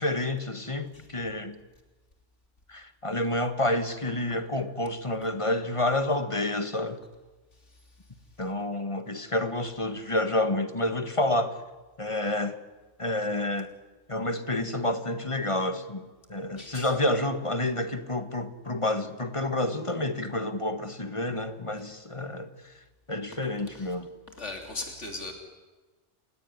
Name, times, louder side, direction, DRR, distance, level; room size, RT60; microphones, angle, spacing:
voice 1, 0.0-1.6 2.7-7.0 8.4-11.6 12.0-12.6 13.0-13.7 14.1-22.5 23.1-24.1, left 1 dB, 25° left, 1.7 m, -29 dB
voice 2, 16.6-16.9 23.7-23.9 24.4-25.3, left 2 dB, 80° left, 3.5 m, -38 dB
29.5 x 17.5 x 9.8 m
omnidirectional pair, 1.2 m